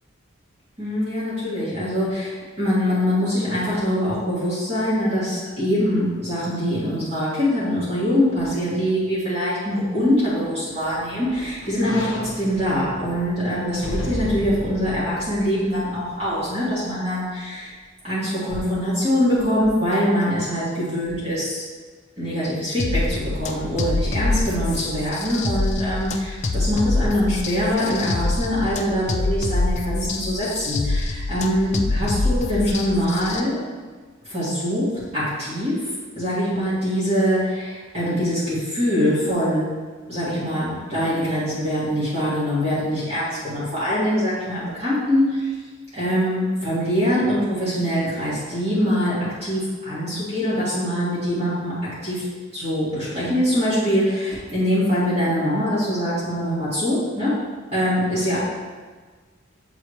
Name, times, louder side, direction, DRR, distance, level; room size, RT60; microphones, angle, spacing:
voice 1, 0.8-12.1 12.4-17.7 18.0-21.6 22.2-33.6 34.3-35.9 36.2-39.7 40.1-45.5 45.9-51.7 52.0-52.2 52.5-57.3 57.7-58.4, equal, 30° right, -10 dB, 1.8 m, -23 dB
sound 1, 10.2-16.4 16.9-17.0, left 1 dB, 60° left, 0.7 m, -35 dB
sound 2, 22.8-33.4, left 2 dB, 35° left, 0.4 m, -25 dB
7.7 x 4.0 x 3.1 m, 1.4 s
head